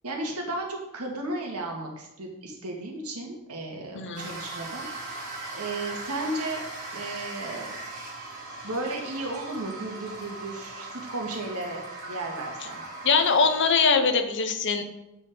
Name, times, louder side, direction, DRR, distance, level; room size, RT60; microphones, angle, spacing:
voice 1, 0.0-4.9 5.5-6.6 6.9-7.7 8.6-12.8, right 2 dB, 75° right, 1 dB, 1.9 m, -34 dB
voice 2, 3.9-4.3 13.0-14.8, left 5 dB, 55° left, 8 dB, 0.9 m, -22 dB
sound 1, 4.1-13.8, right 2 dB, 50° right, 3.2 m, -39 dB
8.6 x 5.4 x 5.1 m, 0.92 s
head